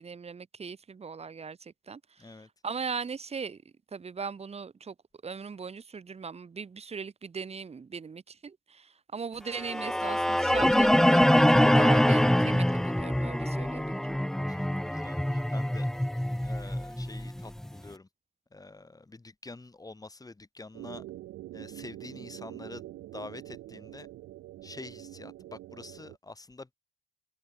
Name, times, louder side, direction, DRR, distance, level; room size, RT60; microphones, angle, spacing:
voice 1, 0.0-3.6 3.9-4.9 5.2-14.2, right 5 dB, 30° right, 1.3 m, -39 dB
voice 2, 2.2-2.5 14.5-15.9 16.4-18.1 18.5-21.0 21.5-22.8 23.1-24.1 24.6-26.7, left 3 dB, 20° left, 3.1 m, -46 dB
sound 1, 9.6-17.7, left 1 dB, ahead, 0.5 m, -24 dB
sound 2, 20.7-26.2, right 15 dB, 85° right, 2.5 m, -45 dB
cardioid pair, 90°, 20 cm